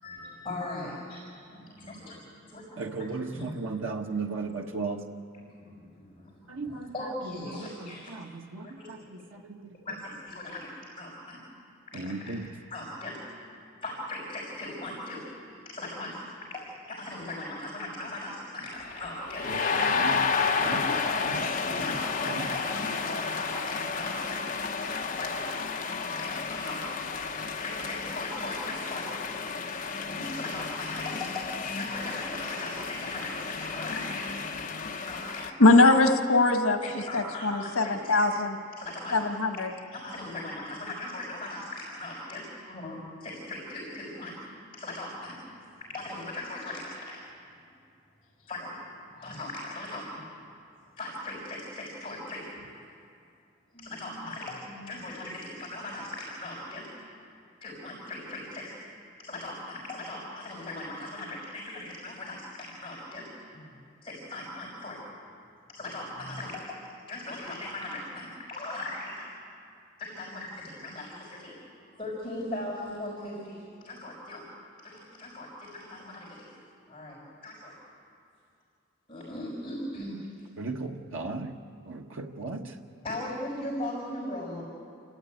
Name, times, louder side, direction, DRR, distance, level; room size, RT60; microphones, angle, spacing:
voice 1, 0.0-3.8 4.1-4.2 5.3-8.1 8.6-9.0 9.8-10.7 11.0-11.4 11.9-12.4 12.7-13.2 13.8-15.2 15.6-16.2 16.5-19.5 20.1-21.3 21.8-24.4 25.2-25.4 26.1-26.8 27.5-29.1 29.7-29.8 30.1-34.4 35.0-35.8 36.8-38.2 38.8-39.2 39.6-41.6 42.0-44.4 44.7-45.4 45.9-47.2 48.5-48.8 49.1-50.0 51.0-52.5 53.7-56.9 57.6-58.8 59.2-63.7 64.0-65.1 65.7-69.3 70.0-70.5 70.8-71.6 71.9-74.4 74.8-76.5 76.9-77.7 79.1-80.3 83.0-84.6, left 1 dB, 25° left, -5 dB, 5.6 m, -39 dB
voice 2, 2.8-5.0 6.5-6.8 8.1-8.3 8.5-8.6 11.9-12.4 19.9-20.2 20.7-20.8 80.6-81.5 81.9-82.0 82.4-82.6, right 3 dB, 70° right, 2 dB, 1.4 m, -34 dB
sound 1, 18.8-35.5, left 5 dB, 40° left, 0.9 m, -32 dB
voice 3, 35.6-38.6 39.1-39.7, left 2 dB, 80° left, 5 dB, 1.5 m, -22 dB
30.0 x 13.0 x 9.4 m, 2.3 s
head